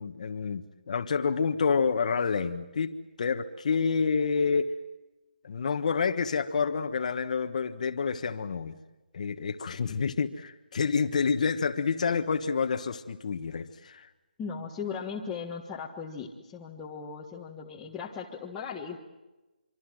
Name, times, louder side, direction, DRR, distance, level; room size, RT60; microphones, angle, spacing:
voice 1, 0.0-4.7 5.4-8.7 9.1-14.1, left 5 dB, 45° left, 7 dB, 1.4 m, -28 dB
voice 2, 14.4-19.0, left 6 dB, 10° left, -3 dB, 1.5 m, -38 dB
25.5 x 25.0 x 7.7 m, 1.1 s
hypercardioid pair, 170°, 5 cm